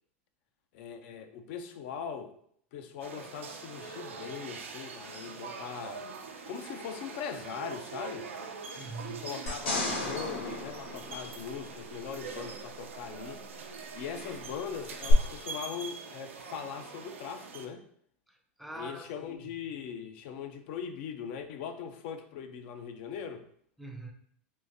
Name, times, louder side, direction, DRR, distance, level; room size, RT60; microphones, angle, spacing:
voice 1, 0.7-2.3 2.7-6.1 6.5-8.3 9.1-13.4 13.9-17.8 18.7-23.4, left 7 dB, 60° left, 0.4 m, -40 dB
sound 1, 3.0-17.7, right 5 dB, 90° right, 0.5 m, -43 dB
voice 2, 8.8-9.3 18.3-19.5 23.8-24.1, right 2 dB, ahead, 0.5 m, -44 dB
sound 2, 9.5-12.0 15.1-15.2, left 3 dB, 80° left, 1.3 m, -35 dB
3.6 x 2.6 x 2.6 m
hypercardioid pair, 105°, 7 cm